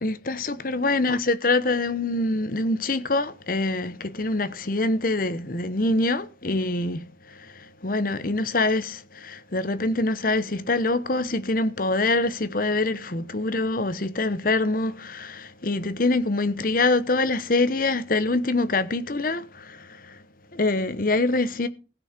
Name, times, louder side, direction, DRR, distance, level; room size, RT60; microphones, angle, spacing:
voice 1, 0.0-20.2 20.5-21.7, left 2 dB, 50° left, 1.0 m, -25 dB
15.5 x 6.5 x 6.0 m
head